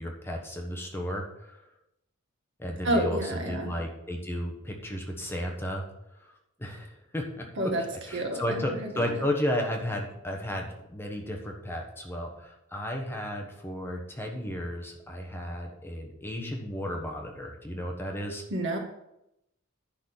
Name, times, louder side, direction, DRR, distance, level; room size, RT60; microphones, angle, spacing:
voice 1, 0.0-1.7 2.6-5.8 6.2-6.3 6.6-18.4, equal, 10° left, 1 dB, 1.2 m, -34 dB
voice 2, 2.8-3.7 7.6-7.8 8.1-9.1 18.5-18.8, right 1 dB, 60° right, 2 dB, 1.7 m, -29 dB
10.5 x 4.2 x 7.0 m, 0.83 s
head